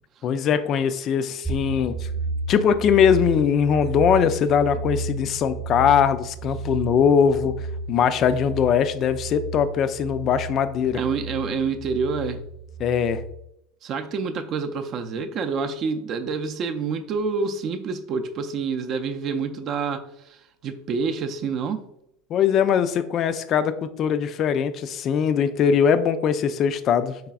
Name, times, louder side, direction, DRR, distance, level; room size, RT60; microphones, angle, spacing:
voice 1, 0.2-1.9 2.5-11.0 12.8-13.2 22.3-27.2, left 7 dB, 45° left, 0.3 m, -21 dB
sound 1, 1.4-13.3, right 3 dB, 10° right, 0.6 m, -32 dB
voice 2, 10.9-12.5 13.8-21.9 26.9-27.0, right 5 dB, 50° right, 0.4 m, -28 dB
4.8 x 3.3 x 2.3 m
hypercardioid pair, 90°, 0 cm